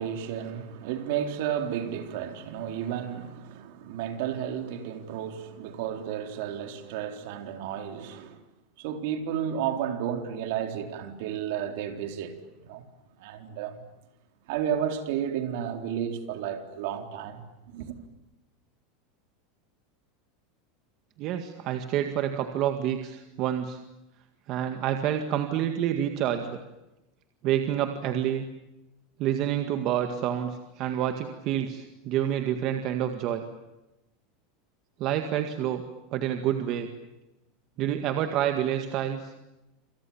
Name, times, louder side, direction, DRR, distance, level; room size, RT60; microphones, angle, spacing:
voice 1, 0.0-8.4 8.8-12.4 12.6-12.9 13.2-13.9 14.5-17.9, right 9 dB, 55° right, 4.0 m, -32 dB
voice 2, 21.2-23.8 24.5-26.6 27.4-28.4 29.2-33.5 35.0-35.8 36.1-36.9 37.8-39.3, right 10 dB, 35° right, 1.9 m, -28 dB
28.0 x 28.0 x 7.3 m
supercardioid pair, 170°, 0 cm